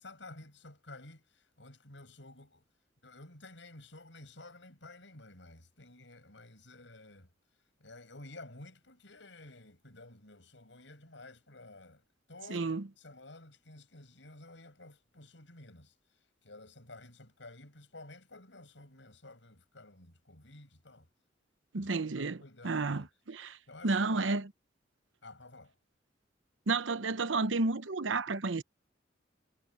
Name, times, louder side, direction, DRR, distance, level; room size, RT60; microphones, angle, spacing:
voice 1, 0.0-2.6 3.0-7.3 7.8-12.0 12.3-12.7 13.0-15.9 16.4-21.1 21.7-23.1 23.7-24.3 25.2-25.7, left 2 dB, 75° left, 7.7 m, -52 dB
voice 2, 12.5-12.8 21.7-23.6 23.8-24.5 26.7-28.6, right 3 dB, 85° right, 0.9 m, -31 dB
head